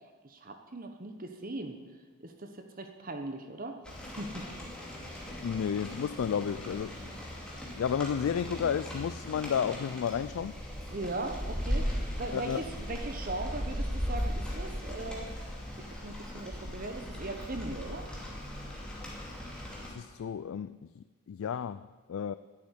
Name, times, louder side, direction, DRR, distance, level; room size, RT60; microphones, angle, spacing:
voice 1, 0.2-1.8 2.2-3.8 4.2-4.5 10.9-11.9 12.2-15.3 15.8-18.0, right 2 dB, 40° right, 6 dB, 1.0 m, -39 dB
Rain, 3.8-19.9, equal, 5° left, 2.4 m, -38 dB
voice 2, 5.4-7.0 7.8-10.6 12.3-12.6 19.9-22.3, left 7 dB, 70° left, 14 dB, 0.3 m, -32 dB
10.5 x 8.6 x 9.8 m, 1.4 s
head